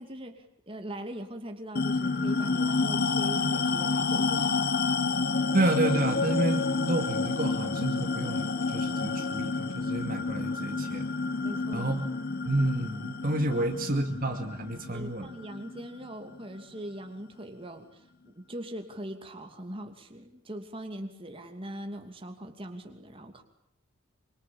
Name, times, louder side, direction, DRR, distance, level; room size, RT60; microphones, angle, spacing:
voice 1, 0.0-4.5 11.4-11.9 13.6-13.7 14.9-23.4, right 1 dB, 25° right, 5 dB, 2.7 m, -41 dB
sound 1, 1.8-16.6, left 4 dB, 45° left, 1.2 m, -29 dB
voice 2, 5.5-11.1 11.7-12.0 12.5-15.3, right 1 dB, 40° right, 5 dB, 2.4 m, -30 dB
25.5 x 25.5 x 8.7 m, 0.75 s
head